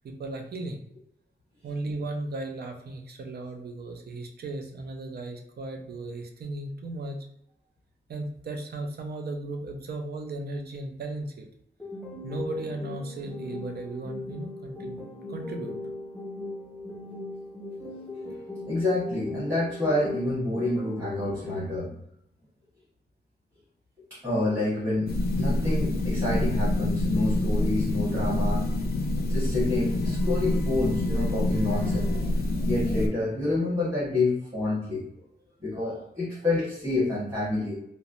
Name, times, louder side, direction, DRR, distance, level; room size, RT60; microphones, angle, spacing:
voice 1, 0.0-0.8 1.6-7.2 8.1-11.5 12.2-15.0 15.3-15.8, right 2 dB, 60° right, 4 dB, 0.5 m, -36 dB
sound 1, 11.8-21.8, left 2 dB, 5° left, 0.5 m, -38 dB
voice 2, 17.9-18.2 18.7-22.0 24.1-28.7 29.3-35.0 35.6-37.7, left 2 dB, 15° right, -10 dB, 1.1 m, -28 dB
sound 2, 25.1-33.1, left 1 dB, 60° left, 0.4 m, -26 dB
3.1 x 2.0 x 2.5 m, 0.73 s
wide cardioid pair, 140°, 18 cm